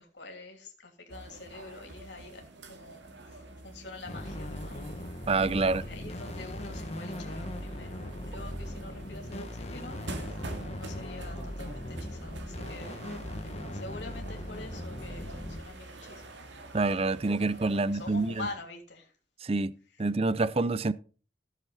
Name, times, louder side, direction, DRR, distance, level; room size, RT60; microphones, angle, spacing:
voice 1, 0.0-5.2 5.6-10.4 10.8-13.0 13.3-16.3 17.7-19.1, left 3 dB, 75° left, 3.1 m, -46 dB
sound 1, 1.1-18.5, right 2 dB, 85° right, 2.2 m, -47 dB
sound 2, 4.1-15.6, left 1 dB, 35° left, 1.6 m, -39 dB
voice 2, 5.3-5.8 16.7-18.5 19.4-19.7 20.0-20.9, right 3 dB, 35° right, 0.5 m, -27 dB
15.5 x 7.2 x 4.1 m
head